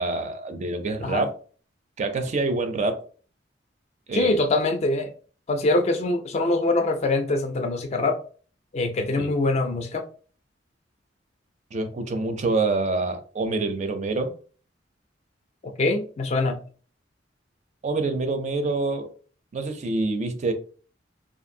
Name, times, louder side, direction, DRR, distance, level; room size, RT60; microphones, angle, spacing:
voice 1, 0.0-1.3 2.0-3.1 4.1-4.4 9.2-9.3 11.7-14.4 17.8-19.1 19.5-20.5, right 3 dB, 40° right, 0.4 m, -26 dB
voice 2, 4.1-5.1 5.5-8.2 8.7-10.0 15.8-16.6, left 2 dB, 35° left, 0.4 m, -23 dB
2.5 x 2.5 x 2.6 m
head